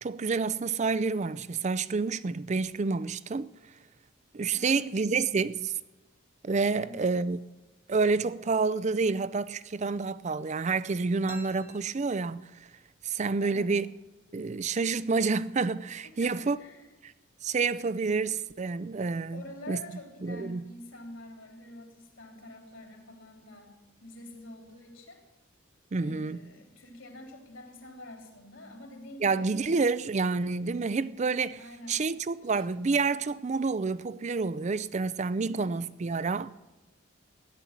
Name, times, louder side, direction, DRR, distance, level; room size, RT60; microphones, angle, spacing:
voice 1, 0.0-3.5 4.3-5.7 6.4-7.4 7.9-12.4 13.0-13.9 14.3-16.6 17.0-17.1 17.4-19.8 20.2-20.6 25.9-26.4 29.2-31.6 31.9-36.5, right 4 dB, 35° right, 0.4 m, -28 dB
voice 2, 4.5-4.9 6.7-7.2 13.4-13.7 16.0-16.9 19.3-23.7 24.0-25.2 26.0-29.7 31.6-32.1 32.4-32.7 35.4-35.8, left 1 dB, 75° left, 3.4 m, -47 dB
sound 1, 11.3-13.0, right 1 dB, 15° right, 1.2 m, -51 dB
15.5 x 11.0 x 7.3 m
head